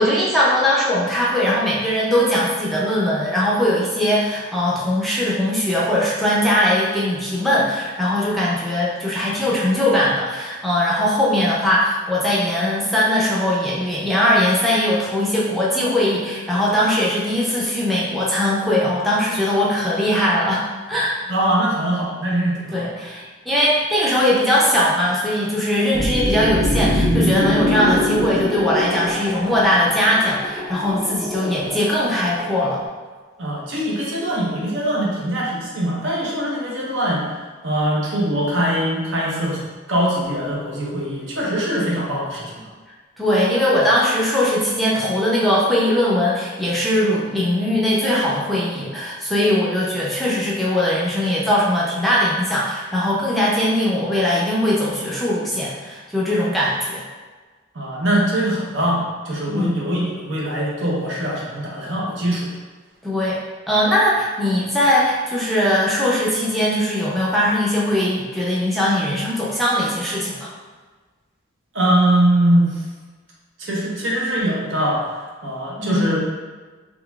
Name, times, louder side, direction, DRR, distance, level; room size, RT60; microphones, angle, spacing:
voice 1, 0.0-21.2 22.7-32.8 43.2-57.0 59.5-59.8 63.0-63.4 63.7-70.5 75.8-76.0, left 1 dB, ahead, -7 dB, 0.4 m, -20 dB
voice 2, 21.3-22.9 33.4-37.4 37.6-39.6 39.9-42.7 57.7-62.5 71.7-72.8 73.6-76.2, right 1 dB, 70° right, -4 dB, 0.9 m, -22 dB
sound 1, 25.9-32.9, equal, 30° right, 0.7 m, -24 dB
3.7 x 3.1 x 2.3 m, 1.4 s
head